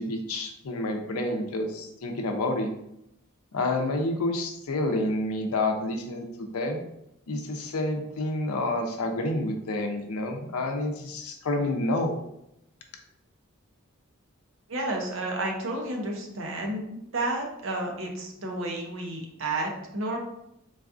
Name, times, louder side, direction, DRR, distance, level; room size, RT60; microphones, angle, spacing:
voice 1, 0.0-2.7 3.5-6.8 7.3-12.1, left 2 dB, 85° left, 4 dB, 0.5 m, -29 dB
voice 2, 14.7-20.2, right 2 dB, 60° right, 1 dB, 0.6 m, -31 dB
3.9 x 2.3 x 2.5 m, 0.81 s
head